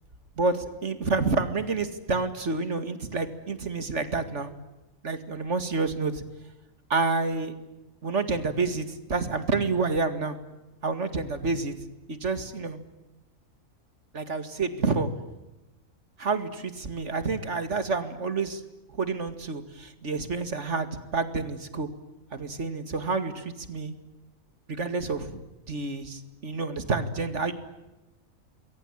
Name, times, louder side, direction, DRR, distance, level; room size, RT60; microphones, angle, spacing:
voice 1, 0.4-4.5 5.0-6.2 6.9-7.5 8.0-10.4 10.8-11.7 12.1-12.8 14.1-15.1 16.2-18.6 18.9-21.9 22.3-23.9 24.7-25.4 25.7-27.5, right 3 dB, 60° right, 10 dB, 2.5 m, -29 dB
27.5 x 22.5 x 8.9 m, 0.99 s
omnidirectional pair, 1.4 m